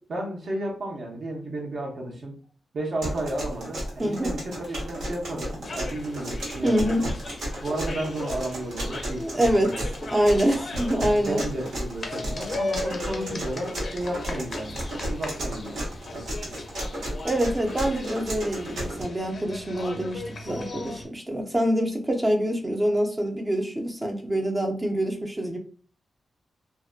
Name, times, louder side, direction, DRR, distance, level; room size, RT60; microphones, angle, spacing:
voice 1, 0.1-2.3 2.7-7.0 7.5-9.9 11.0-16.5, right 1 dB, 55° right, 0.6 m, -33 dB
sound 1, 3.0-19.0, right 1 dB, 90° right, 1.0 m, -33 dB
voice 2, 4.0-4.3 6.6-7.1 9.2-11.4 17.2-25.6, equal, 15° right, 0.4 m, -25 dB
sound 2, 5.6-21.1, left 2 dB, 45° left, 0.5 m, -38 dB
2.5 x 2.2 x 2.4 m
wide cardioid pair, 140°, 0 cm